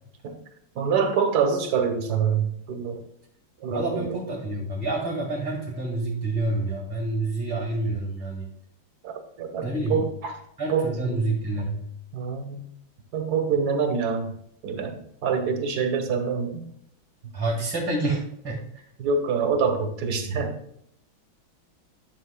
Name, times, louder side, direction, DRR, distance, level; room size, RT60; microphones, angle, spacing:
voice 1, 0.7-3.0 3.6-4.2 9.0-10.3 10.7-11.3 12.1-12.6 13.1-14.3 14.6-16.7 19.0-20.5, right 6 dB, 55° right, 5 dB, 1.4 m, -26 dB
voice 2, 3.7-8.5 9.6-10.0 10.6-11.9 17.3-18.8, right 2 dB, 10° right, 0 dB, 1.7 m, -28 dB
11.5 x 6.4 x 2.2 m, 0.71 s
omnidirectional pair, 2.2 m